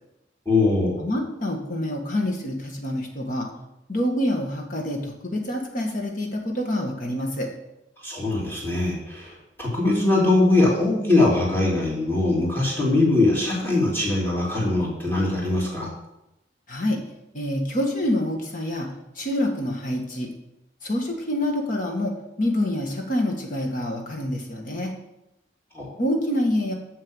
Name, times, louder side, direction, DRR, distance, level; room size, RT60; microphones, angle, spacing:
voice 1, 0.4-1.0 8.0-15.9 25.7-25.9, left 2 dB, 10° left, -5 dB, 3.0 m, -21 dB
voice 2, 1.0-3.5 3.9-7.5 16.7-17.0 17.3-18.9 19.1-20.3 20.8-24.9 26.0-26.7, left 1 dB, 45° left, 2 dB, 1.6 m, -26 dB
6.9 x 6.6 x 7.2 m, 0.91 s
head